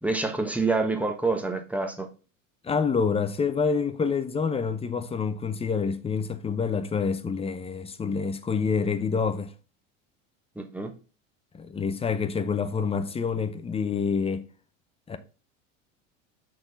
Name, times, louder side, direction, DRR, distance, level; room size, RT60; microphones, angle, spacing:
voice 1, 0.0-2.1 10.6-10.9, right 3 dB, 5° right, 1.0 m, -27 dB
voice 2, 2.6-9.5 11.5-14.5 15.1-15.2, left 5 dB, 15° left, 0.6 m, -27 dB
6.1 x 3.9 x 4.0 m
hypercardioid pair, 95°, 39 cm